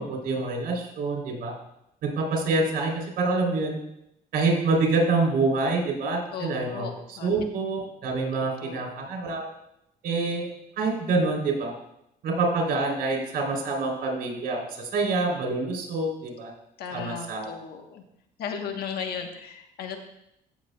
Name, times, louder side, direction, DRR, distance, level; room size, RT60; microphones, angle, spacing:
voice 1, 0.0-1.5 2.0-3.8 4.3-9.5 10.0-10.5 10.8-11.7 12.2-16.5 16.9-17.5, right 3 dB, 65° right, 0 dB, 3.4 m, -26 dB
voice 2, 6.3-7.3 8.3-8.8 16.8-18.0 18.4-20.0, left 7 dB, 70° left, 5 dB, 1.2 m, -36 dB
16.0 x 7.0 x 2.3 m, 0.79 s
cardioid pair, 110°, 17 cm